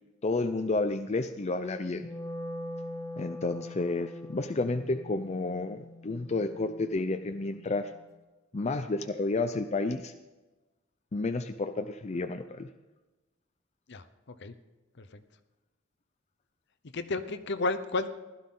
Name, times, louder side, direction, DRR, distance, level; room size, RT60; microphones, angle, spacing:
voice 1, 0.2-2.1 3.2-7.9 8.5-10.1 11.1-12.7, left 3 dB, 35° left, 7 dB, 0.5 m, -31 dB
Wind instrument woodwind instrument, 1.9-8.1, left 1 dB, 15° left, 0.9 m, -43 dB
voice 2, 16.9-18.1, left 3 dB, 60° left, 12 dB, 0.8 m, -31 dB
16.0 x 12.0 x 3.8 m, 1.2 s
head